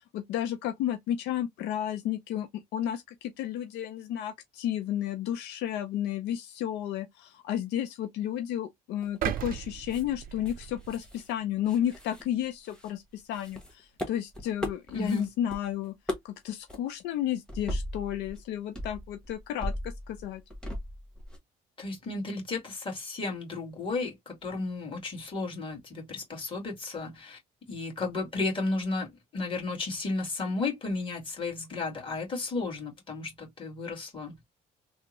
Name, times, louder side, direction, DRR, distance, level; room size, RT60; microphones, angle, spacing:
voice 1, 0.1-15.9 16.2-20.4, left 11 dB, 85° left, 0.5 m, -32 dB
sound 1, 9.0-9.6 9.9-10.0 10.4-11.3 11.6-12.9 13.3-15.6 15.8-16.4 16.7-16.8 17.5-18.4 18.7-21.4, left 1 dB, 5° left, 1.1 m, -38 dB
sound 2, 9.2-11.4 11.9-12.0, right 10 dB, 55° right, 0.4 m, -36 dB
voice 2, 14.9-15.3 21.8-27.4 27.7-34.4, left 3 dB, 30° left, 1.9 m, -33 dB
3.4 x 2.1 x 2.9 m
cardioid pair, 110°, 17 cm